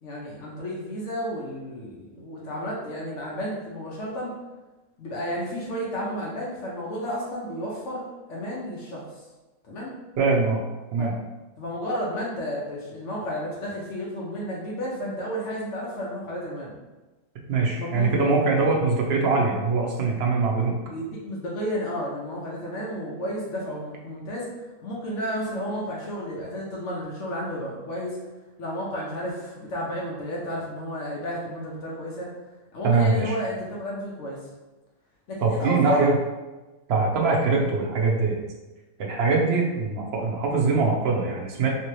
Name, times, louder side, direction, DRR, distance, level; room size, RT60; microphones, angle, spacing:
voice 1, 0.0-4.3 5.0-9.0 9.7-9.9 11.0-11.1 11.6-16.8 17.7-18.3 20.8-24.5 24.8-28.2 28.6-32.3 32.7-34.4 35.3-36.1 37.6-37.7, equal, 60° left, -4 dB, 1.0 m, -32 dB
voice 2, 10.2-10.6 10.9-11.1 17.5-20.7 32.8-33.4 35.4-36.2 36.9-38.4 39.0-41.7, right 4 dB, 60° right, -1 dB, 0.7 m, -22 dB
3.3 x 2.8 x 3.0 m, 1.1 s
omnidirectional pair, 1.5 m